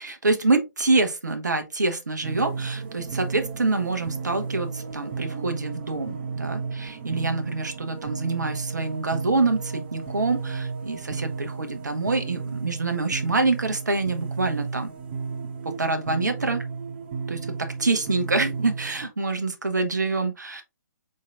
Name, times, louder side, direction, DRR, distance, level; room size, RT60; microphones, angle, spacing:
voice 1, 0.0-14.9 15.6-16.6 17.3-20.6, right 3 dB, 70° right, 0.8 m, -26 dB
sound 1, 2.2-19.1, right 5 dB, 35° right, 0.6 m, -34 dB
4.3 x 3.7 x 2.4 m
figure-of-eight pair, 130°, 10 cm